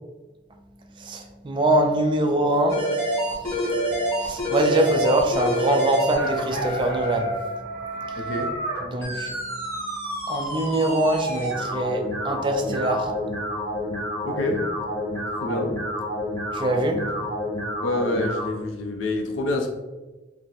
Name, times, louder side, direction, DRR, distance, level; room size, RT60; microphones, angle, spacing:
voice 1, 1.0-2.9 3.2-7.3 8.1-8.2 8.8-9.4 10.3-13.1 16.5-17.0, right 1 dB, 25° right, 3 dB, 0.4 m, -24 dB
sound 1, 2.7-18.5, equal, 15° left, 1.1 m, -28 dB
voice 2, 8.2-8.5 14.2-14.6 15.4-15.7 17.8-19.7, left 2 dB, 70° left, 3 dB, 0.5 m, -27 dB
4.3 x 2.1 x 3.8 m, 1.2 s
head